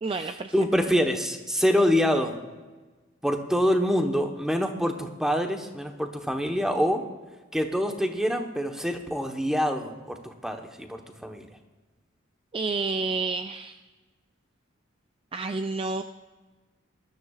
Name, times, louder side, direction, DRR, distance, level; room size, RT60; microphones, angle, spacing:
voice 1, 0.0-0.5 12.5-13.8 15.3-16.0, right 4 dB, 25° right, 7 dB, 0.3 m, -29 dB
voice 2, 0.5-2.4 3.2-7.0 7.5-11.4, equal, 5° right, 4 dB, 1.0 m, -25 dB
21.0 x 13.0 x 2.4 m, 1.3 s
head